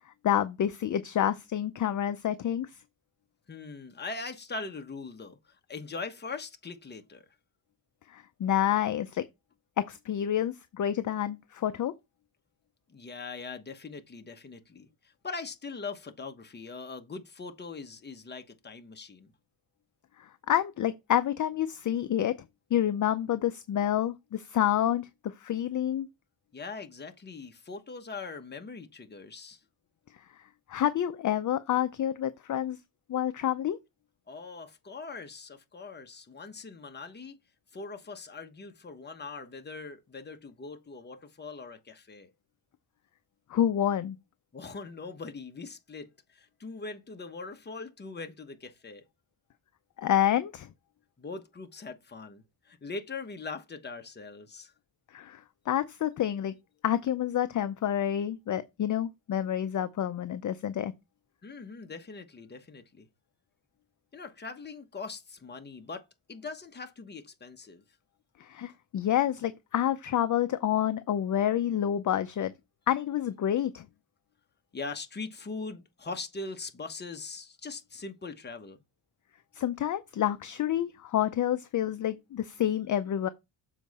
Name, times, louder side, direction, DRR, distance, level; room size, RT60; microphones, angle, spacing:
voice 1, 0.2-2.7 8.1-9.2 9.8-11.9 20.2-22.3 22.7-25.1 25.4-26.1 30.7-32.8 33.1-33.8 43.5-44.2 50.0-50.7 55.1-56.5 56.8-60.9 68.4-72.5 72.9-73.8 79.6-83.3, left 11 dB, 40° left, 0.6 m, -28 dB
voice 2, 3.5-7.2 12.9-19.3 26.5-29.6 34.3-37.4 37.7-42.3 44.5-49.0 51.2-54.7 61.4-63.1 64.1-67.8 74.7-78.8, left 4 dB, 20° left, 1.1 m, -41 dB
7.1 x 4.7 x 4.1 m
cardioid pair, 130°, 45 cm